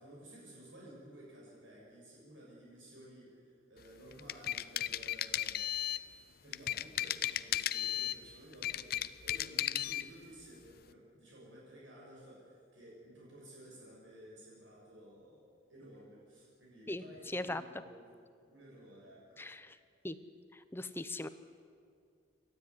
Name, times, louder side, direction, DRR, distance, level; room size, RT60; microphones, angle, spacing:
voice 1, 0.0-5.7 6.1-18.0 18.4-19.5, right 1 dB, 70° right, -5 dB, 6.4 m, -55 dB
sound 1, 4.1-6.1 6.5-8.2 8.5-10.1, left 12 dB, 50° left, 0.5 m, -35 dB
voice 2, 19.4-19.8 20.0-20.2 20.5-21.3, left 2 dB, 10° left, 12 dB, 0.7 m, -39 dB
28.5 x 13.0 x 9.6 m, 2.3 s
head